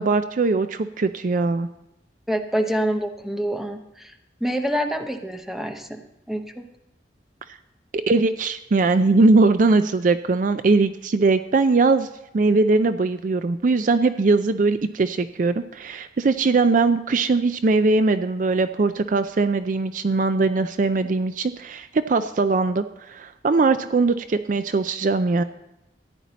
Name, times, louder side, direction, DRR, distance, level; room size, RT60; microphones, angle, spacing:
voice 1, 0.0-1.7 7.9-12.1 12.3-25.4, right 3 dB, 45° right, 11 dB, 0.4 m, -20 dB
voice 2, 2.3-4.1 4.4-6.0 6.3-6.6, equal, ahead, 5 dB, 0.8 m, -26 dB
14.5 x 10.0 x 4.1 m, 0.91 s
head